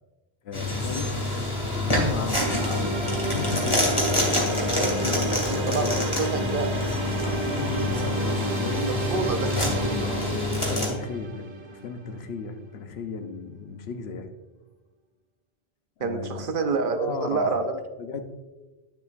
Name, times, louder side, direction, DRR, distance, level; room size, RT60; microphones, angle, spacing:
voice 1, 0.4-1.2 1.7-3.9 4.2-5.9 7.2-8.9 10.0-14.3 16.0-16.4 16.9-17.6 18.0-18.2, left 4 dB, 85° left, 7 dB, 1.0 m, -35 dB
sound 1, 0.5-10.9, left 1 dB, 30° left, 2.0 m, -26 dB
sound 2, 2.3-12.3, right 2 dB, 30° right, 0.6 m, -32 dB
voice 2, 6.2-6.7 9.1-9.5 16.0-17.8, right 4 dB, 60° right, 7 dB, 0.8 m, -27 dB
10.0 x 6.9 x 2.5 m, 1.2 s
omnidirectional pair, 1.0 m